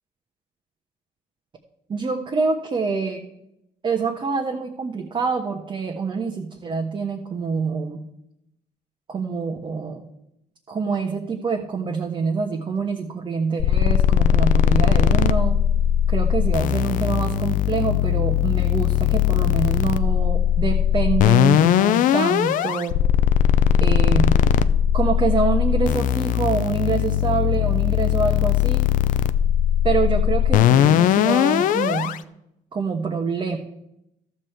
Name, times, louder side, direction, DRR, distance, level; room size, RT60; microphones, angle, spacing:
voice 1, 1.9-3.3 3.8-8.0 9.1-10.1 10.7-15.6 16.1-23.0 23.8-24.4 24.9-28.9 29.8-32.1 32.7-33.6, right 5 dB, 35° right, 2 dB, 1.2 m, -26 dB
sound 1, 13.6-32.2, left 10 dB, 65° left, 0.5 m, -19 dB
12.5 x 6.7 x 4.5 m, 0.83 s
supercardioid pair, 85°, 15 cm